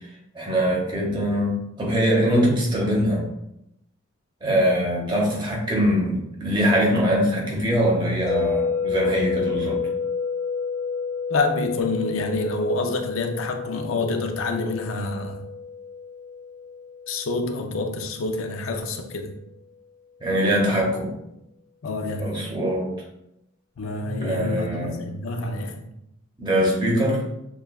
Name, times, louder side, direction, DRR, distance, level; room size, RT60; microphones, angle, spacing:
voice 1, 0.3-3.2 4.4-9.8 20.2-21.1 22.2-22.9 24.2-25.0 26.4-27.2, equal, 20° right, 1.0 m, -22 dB
sound 1, 8.3-18.3, left 5 dB, 20° left, 0.5 m, -30 dB
voice 2, 11.3-15.5 17.1-19.4 21.8-22.5 23.8-25.9, left 2 dB, 75° left, 0.5 m, -27 dB
6.5 x 2.4 x 2.3 m
head